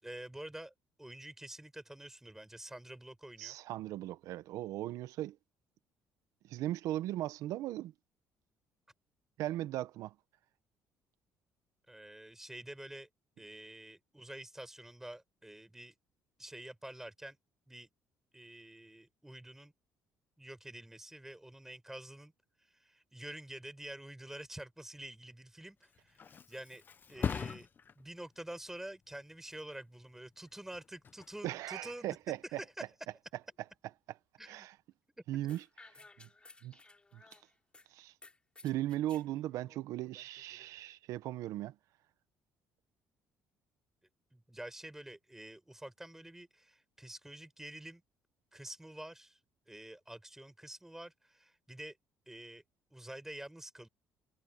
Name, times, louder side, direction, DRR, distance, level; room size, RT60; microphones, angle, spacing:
voice 1, 0.0-0.7 1.0-3.6 11.9-13.1 13.4-15.9 16.4-17.4 17.7-17.9 18.3-19.7 20.4-22.3 22.7-26.8 27.1-27.7 28.0-32.2 32.4-32.7 34.4-34.7 39.3-40.2 40.5-41.0 44.3-48.0 48.5-49.4 49.7-52.0 52.3-52.6 52.9-53.9, right 1 dB, 5° right, 4.8 m, -48 dB
voice 2, 3.4-5.4 6.4-7.9 9.4-10.1 31.4-32.6 34.5-34.8 35.3-35.6 36.2-36.3 36.6-36.8 37.1-37.2 37.9-38.1 38.6-41.7, right 14 dB, 75° right, 1.0 m, -38 dB
Thump thud, 25.6-33.1 33.5-33.9, left 6 dB, 35° left, 0.9 m, -44 dB
sound 1, 35.5-37.9 38.2-39.3, left 3 dB, 20° left, 3.1 m, -57 dB
cardioid pair, 100°, 6 cm